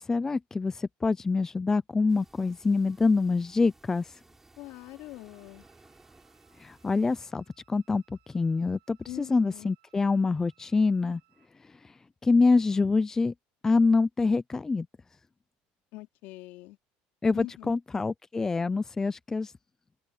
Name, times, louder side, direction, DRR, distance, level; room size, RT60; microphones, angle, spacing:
voice 1, 0.0-4.0 6.6-8.0 8.3-11.2 12.2-13.3 13.6-14.9 17.2-19.5, left 3 dB, 15° left, 0.6 m, -25 dB
sound 1, 2.1-7.2, right 2 dB, 10° right, 6.3 m, -59 dB
voice 2, 4.6-5.6 9.1-9.7 15.9-16.8 17.3-17.7, left 19 dB, 70° left, 3.7 m, -43 dB
Wind instrument woodwind instrument, 5.3-11.5, right 17 dB, 70° right, 6.2 m, -68 dB
open air
cardioid pair, 135°, 3 cm